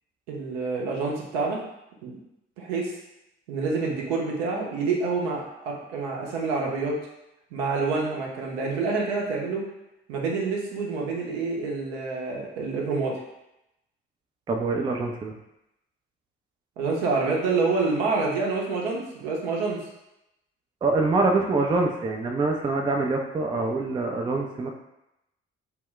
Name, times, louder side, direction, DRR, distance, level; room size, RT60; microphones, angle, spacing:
voice 1, 0.3-1.6 2.0-2.2 2.6-2.9 3.5-7.0 7.5-9.6 10.1-13.2 16.8-19.8, right 4 dB, 70° right, -2 dB, 0.7 m, -27 dB
voice 2, 14.5-15.3 20.8-24.7, right 3 dB, 15° right, 2 dB, 0.3 m, -25 dB
2.2 x 2.1 x 3.7 m, 0.88 s
figure-of-eight pair, 45°, 32 cm